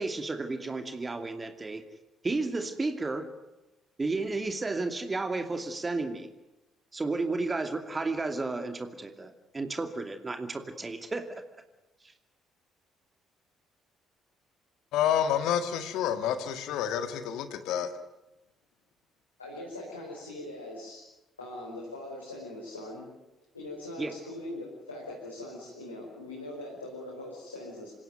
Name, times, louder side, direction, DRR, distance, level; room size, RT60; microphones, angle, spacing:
voice 1, 0.0-1.8 2.2-3.3 4.0-6.3 6.9-11.4 12.0-12.1 24.0-24.1, right 3 dB, 25° right, 2.5 m, -32 dB
voice 2, 14.9-17.9, left 9 dB, 60° left, 1.7 m, -28 dB
voice 3, 19.4-21.0 21.4-23.1 23.5-27.9, left 1 dB, 85° left, 5.4 m, -41 dB
27.5 x 17.0 x 9.4 m
figure-of-eight pair, 45°, 0 cm